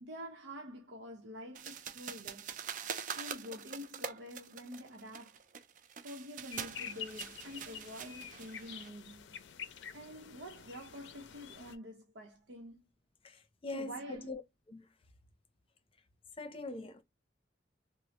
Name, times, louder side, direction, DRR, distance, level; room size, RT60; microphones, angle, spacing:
voice 1, 0.0-2.5 3.1-5.4 6.0-9.4 9.9-12.8 13.7-14.3, equal, 90° right, 0.7 m, -47 dB
sound 1, 1.5-8.9, right 7 dB, 45° right, 0.4 m, -44 dB
sound 2, 6.5-11.8, left 8 dB, 80° left, 0.5 m, -48 dB
voice 2, 13.2-14.4 14.7-14.9 16.4-17.0, left 2 dB, 30° left, 0.6 m, -42 dB
3.1 x 2.0 x 2.8 m
head